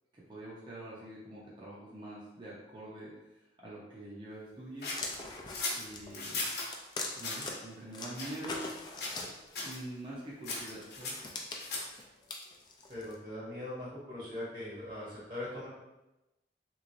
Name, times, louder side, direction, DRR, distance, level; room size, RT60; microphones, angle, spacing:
voice 1, 0.1-3.1 3.6-4.9 5.7-6.5 7.2-8.7 9.6-11.2, right 1 dB, 25° right, -7 dB, 0.6 m, -45 dB
sound 1, 4.8-6.7 7.2-7.5 8.1-8.7 9.0-9.3 9.5-9.8 10.4-12.0, left 3 dB, 65° left, 0.9 m, -38 dB
sound 2, 4.9-7.5 7.9-9.7 10.5-13.1, left 3 dB, 25° left, 0.3 m, -42 dB
voice 2, 12.9-15.7, left 1 dB, 45° right, -7 dB, 1.0 m, -41 dB
3.5 x 3.0 x 2.6 m, 1.0 s
head